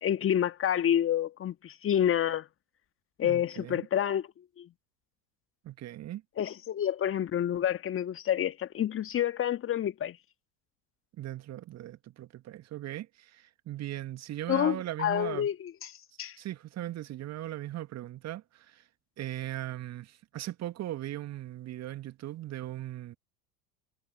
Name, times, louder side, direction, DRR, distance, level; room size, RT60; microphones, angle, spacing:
voice 1, 0.0-2.5 3.2-4.3 4.6-4.7 6.4-10.2 14.5-15.7 16.2-16.4, left 10 dB, 25° left, 1.8 m, -28 dB
voice 2, 3.2-3.9 5.6-6.2 11.2-15.5 16.4-18.8 19.2-23.2, right 13 dB, 35° right, 2.4 m, -39 dB
figure-of-eight pair, 80°, 47 cm